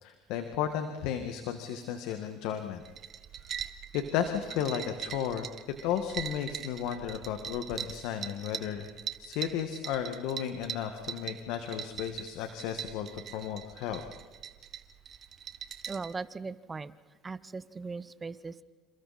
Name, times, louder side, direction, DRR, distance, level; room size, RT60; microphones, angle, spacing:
voice 1, 0.0-2.8 3.9-5.5 5.8-8.9 9.2-14.0, left 9 dB, 75° left, 7 dB, 1.7 m, -34 dB
sound 1, 2.8-16.1, right 9 dB, 45° right, 1.4 m, -42 dB
voice 2, 15.9-16.9 17.2-18.6, right 4 dB, 20° right, 16 dB, 0.8 m, -39 dB
28.5 x 28.0 x 4.3 m, 1.3 s
supercardioid pair, 110°, 0 cm